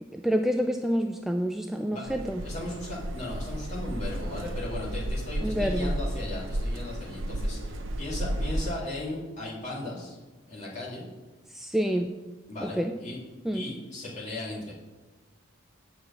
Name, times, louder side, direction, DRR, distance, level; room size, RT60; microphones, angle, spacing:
voice 1, 0.1-2.4 5.4-5.9 11.5-12.2 12.6-12.9 13.4-13.7, equal, ahead, 4 dB, 0.3 m, -28 dB
sound 1, 2.1-8.7, right 1 dB, 75° right, 0.7 m, -32 dB
voice 2, 2.4-10.2 10.5-11.0 12.5-13.2 13.5-14.7, left 2 dB, 40° left, -6 dB, 2.6 m, -37 dB
7.4 x 4.9 x 7.0 m, 1.2 s
head